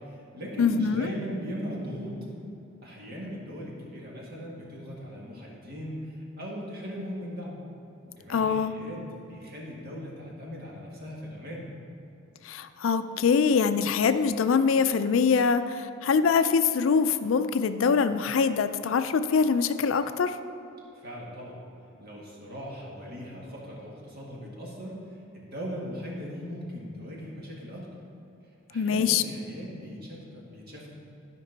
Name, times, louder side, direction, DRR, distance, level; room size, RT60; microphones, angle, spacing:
voice 1, 0.1-2.2 2.8-7.6 8.2-11.7 21.0-21.6 22.0-25.0 25.3-27.9 28.7-30.9, equal, 50° right, -4 dB, 1.9 m, -39 dB
voice 2, 0.6-1.1 8.3-8.7 12.4-20.4 28.7-29.2, left 5 dB, 70° left, 11 dB, 0.4 m, -24 dB
12.5 x 5.2 x 4.0 m, 2.9 s
head